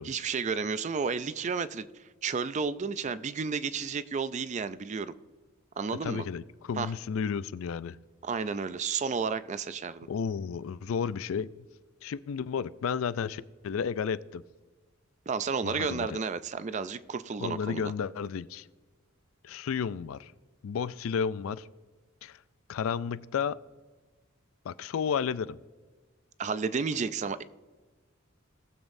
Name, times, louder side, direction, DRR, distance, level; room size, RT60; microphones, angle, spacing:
voice 1, 0.0-5.2 5.8-6.3 6.8-6.9 8.2-10.1 15.3-17.9 26.4-27.4, right 5 dB, 35° right, 14 dB, 0.4 m, -32 dB
voice 2, 6.0-8.0 10.1-11.5 12.0-14.4 15.6-16.2 17.4-18.7 19.4-20.3 20.6-21.7 22.2-22.4 22.7-23.6 24.6-25.6, left 6 dB, 70° left, 17 dB, 0.3 m, -32 dB
18.5 x 7.1 x 2.6 m, 1.4 s
head